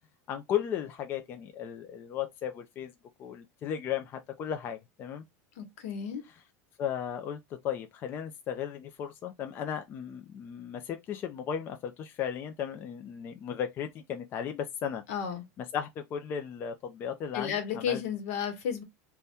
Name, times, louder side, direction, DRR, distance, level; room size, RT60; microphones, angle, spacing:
voice 1, 0.3-2.9 3.2-5.2 6.8-7.4 7.6-15.0 15.6-18.0, left 9 dB, 30° left, 0.3 m, -35 dB
voice 2, 5.6-6.2 15.1-15.4 17.3-18.8, left 7 dB, 75° left, 0.9 m, -33 dB
2.7 x 2.2 x 3.4 m
supercardioid pair, 165°, 8 cm